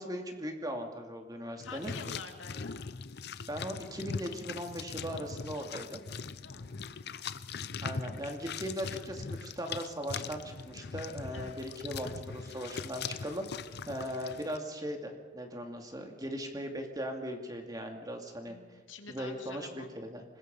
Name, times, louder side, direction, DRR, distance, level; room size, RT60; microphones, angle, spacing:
voice 1, 0.0-1.9 3.5-6.0 7.8-13.4 13.9-18.6 19.1-20.2, equal, 20° right, 3 dB, 2.5 m, -39 dB
voice 2, 1.6-2.8 6.4-6.7 11.3-11.6 13.9-14.2 18.4-19.9, left 4 dB, 90° left, 5 dB, 2.4 m, -47 dB
sound 1, 1.6-14.6, left 5 dB, 55° left, 0.7 m, -41 dB
25.5 x 20.5 x 5.5 m, 1.3 s
head